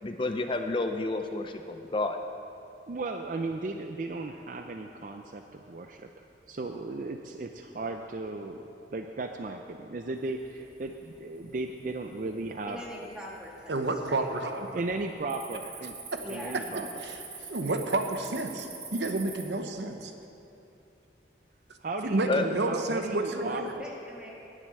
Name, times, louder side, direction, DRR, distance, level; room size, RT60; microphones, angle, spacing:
voice 1, 0.0-2.2 22.3-22.5, left 2 dB, 25° left, 6 dB, 0.4 m, -30 dB
voice 2, 2.9-8.6 8.9-12.8 14.7-16.0 16.3-16.9 17.4-17.5 21.8-23.6, right 2 dB, 45° right, 5 dB, 0.4 m, -36 dB
Cricket, 10.5-10.9 11.4-11.8 12.4-12.5 13.1-13.7 14.0-14.3 14.6-19.4, right 5 dB, 30° right, 1.7 m, -44 dB
voice 3, 12.7-13.8 14.0-14.3 16.2-16.7 23.8-24.3, equal, 5° right, -4 dB, 1.7 m, -42 dB
voice 4, 13.7-14.7 17.0-17.2 17.5-20.1 22.1-23.8, right 2 dB, 75° right, 6 dB, 0.9 m, -30 dB
9.5 x 7.6 x 8.9 m, 2.8 s
head